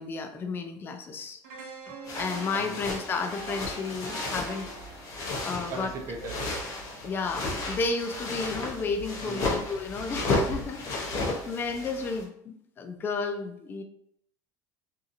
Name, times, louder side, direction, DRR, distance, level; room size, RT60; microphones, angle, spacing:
voice 1, 0.0-1.4 1.9-4.7 5.4-5.9 7.0-13.8, left 4 dB, 25° left, 6 dB, 0.3 m, -32 dB
sound 1, 1.4-7.5 7.8-8.0, right 3 dB, 85° right, 0.6 m, -45 dB
sound 2, 2.1-12.2, left 2 dB, 45° left, 0.7 m, -33 dB
voice 2, 5.7-6.5 9.2-9.6 11.3-11.6, right 4 dB, 40° right, 3 dB, 0.6 m, -39 dB
2.7 x 2.6 x 2.5 m, 0.72 s
cardioid pair, 130°, 8 cm